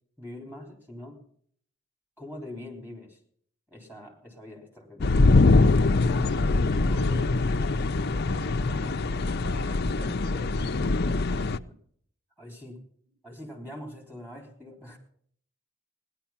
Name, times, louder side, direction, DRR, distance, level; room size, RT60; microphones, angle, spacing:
voice 1, 0.2-1.2 2.2-3.2 3.7-5.4 6.2-7.0 11.3-11.4 11.7-11.8 12.4-12.8 13.2-15.0, left 1 dB, 10° right, 2 dB, 3.5 m, -43 dB
sound 1, 5.0-11.6, left 3 dB, 50° left, 0.6 m, -23 dB
voice 2, 6.3-7.3 8.0-11.2, equal, 80° right, -2 dB, 7.7 m, -44 dB
17.5 x 10.5 x 5.8 m, 0.62 s
head